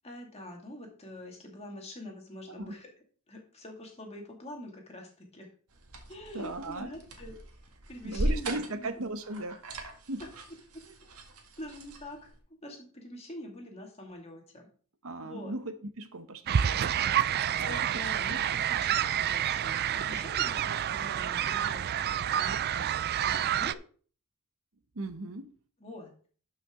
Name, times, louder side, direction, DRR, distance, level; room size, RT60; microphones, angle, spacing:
voice 1, 0.0-2.9 3.3-5.5 6.1-7.4 7.9-9.0 10.2-10.3 10.7-10.8 11.6-12.3 12.6-14.7 15.2-15.5 17.7-23.8 25.8-26.1, left 1 dB, 30° left, 1 dB, 2.2 m, -45 dB
sound 1, 5.7-12.4, right 1 dB, 85° right, 1.8 m, -38 dB
voice 2, 6.3-6.9 8.0-9.6 10.1-10.2 15.0-17.1 17.5-18.4 25.0-25.5, right 2 dB, 65° right, 9 dB, 0.9 m, -38 dB
sound 2, 16.5-23.7, right 9 dB, 45° right, 0.3 m, -29 dB
12.0 x 5.7 x 3.7 m, 0.42 s
head